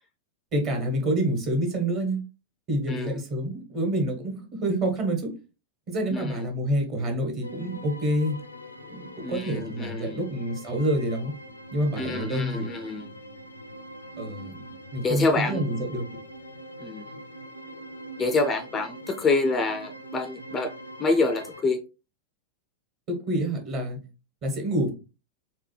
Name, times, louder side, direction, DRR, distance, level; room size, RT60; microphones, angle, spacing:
voice 1, 0.5-2.2 2.7-5.3 5.9-8.4 8.9-11.3 11.7-12.7 14.2-14.6 14.9-16.0 23.1-24.0 24.4-24.9, right 1 dB, 35° right, 1.3 m, -27 dB
voice 2, 2.9-3.2 6.1-6.4 9.2-10.2 12.0-13.1 15.0-15.8 16.8-17.1 18.2-20.7 21.0-21.8, left 3 dB, 20° left, 0.4 m, -27 dB
sound 1, 7.4-21.6, right 1 dB, 80° left, 0.4 m, -43 dB
4.1 x 2.2 x 3.2 m
figure-of-eight pair, 90°, 0 cm